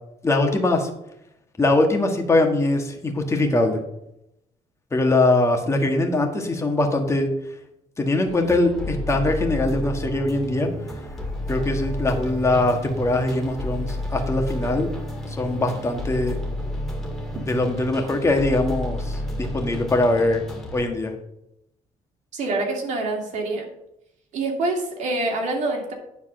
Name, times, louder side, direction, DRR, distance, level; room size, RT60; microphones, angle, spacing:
voice 1, 0.2-0.9 1.6-3.8 4.9-7.3 8.0-10.7 11.5-14.9 15.3-16.4 17.5-20.4 20.7-21.1, left 2 dB, 20° left, 3 dB, 1.5 m, -22 dB
sound 1, 8.3-20.8, left 1 dB, ahead, 2.0 m, -31 dB
voice 2, 22.3-23.6 24.3-25.9, right 2 dB, 60° right, 1 dB, 2.5 m, -26 dB
10.0 x 4.1 x 6.3 m, 0.82 s
cardioid pair, 125°, 14 cm